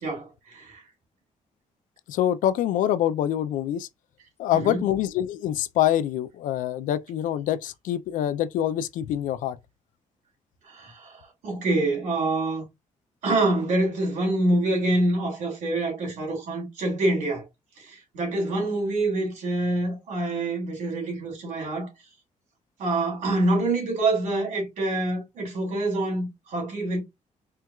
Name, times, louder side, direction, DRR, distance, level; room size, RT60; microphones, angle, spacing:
voice 1, 0.0-0.8 4.5-4.8 10.7-12.6 13.2-17.5 17.8-21.9 22.8-27.0, right 2 dB, 75° right, 2.4 m, -26 dB
voice 2, 2.1-3.9 4.4-9.6, left 11 dB, 90° left, 0.4 m, -25 dB
4.4 x 2.3 x 2.3 m
cardioid pair, 170°, 13 cm